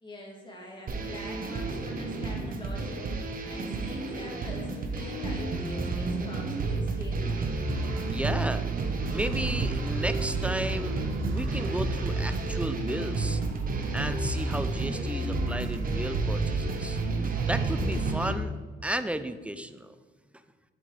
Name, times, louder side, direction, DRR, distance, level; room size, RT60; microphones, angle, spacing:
voice 1, 0.0-7.3, equal, 25° left, -3 dB, 2.7 m, -44 dB
sound 1, 0.9-18.3, right 3 dB, 45° right, 1.0 m, -30 dB
sound 2, 7.6-14.8 15.2-16.5 16.7-16.9 17.3-18.4, right 4 dB, 85° right, 1.2 m, -40 dB
voice 2, 8.1-8.6 9.1-11.0 11.2-13.4 13.9-17.0 17.4-18.5 18.8-19.9, right 1 dB, 5° right, 11 dB, 0.5 m, -33 dB
7.8 x 7.7 x 3.3 m, 1.4 s
cardioid pair, 90°, 20 cm